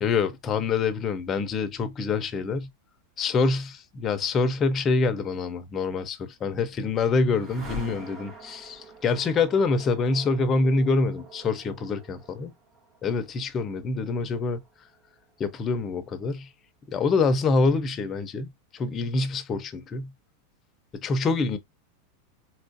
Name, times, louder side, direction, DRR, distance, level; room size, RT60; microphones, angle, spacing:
voice 1, 0.0-2.7 3.2-12.5 13.0-14.6 15.4-16.5 16.9-20.1 21.0-21.6, left 4 dB, 20° left, 0.5 m, -26 dB
sound 1, 6.3-16.2, right 1 dB, 25° right, 1.2 m, -46 dB
4.3 x 2.4 x 2.6 m
supercardioid pair, 165°, 0 cm